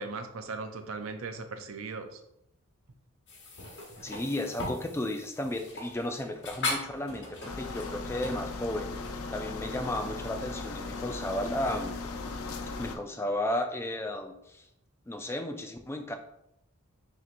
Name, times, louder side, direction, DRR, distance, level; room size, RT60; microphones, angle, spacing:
voice 1, 0.0-2.2, right 4 dB, 65° right, 7 dB, 0.5 m, -38 dB
sound 1, 3.3-10.1, left 2 dB, 55° left, 1.0 m, -39 dB
voice 2, 4.0-12.0 12.8-14.7 15.1-16.2, left 1 dB, 10° left, 5 dB, 0.3 m, -34 dB
sound 2, 7.5-13.0, left 3 dB, 75° left, 0.5 m, -38 dB
5.7 x 2.8 x 2.5 m, 0.80 s
head